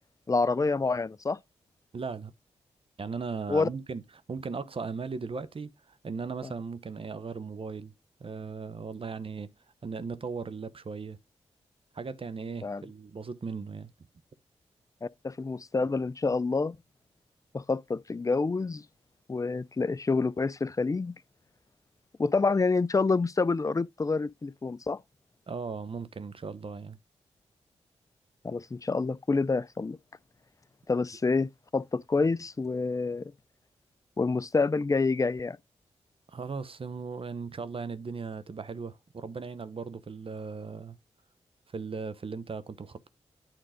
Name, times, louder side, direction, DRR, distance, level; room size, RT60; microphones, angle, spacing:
voice 1, 0.3-1.4 3.5-3.7 12.6-12.8 15.0-16.8 17.5-18.8 19.3-21.2 22.2-25.0 28.4-30.0 30.9-33.3 34.2-35.6, left 4 dB, 30° left, 0.5 m, -27 dB
voice 2, 1.9-2.3 3.0-4.0 4.3-7.9 8.2-9.5 9.8-11.2 11.9-13.9 25.5-27.0 36.3-41.0 41.7-43.1, right 5 dB, 50° right, 0.9 m, -37 dB
9.1 x 3.7 x 5.0 m
supercardioid pair, 45°, 12 cm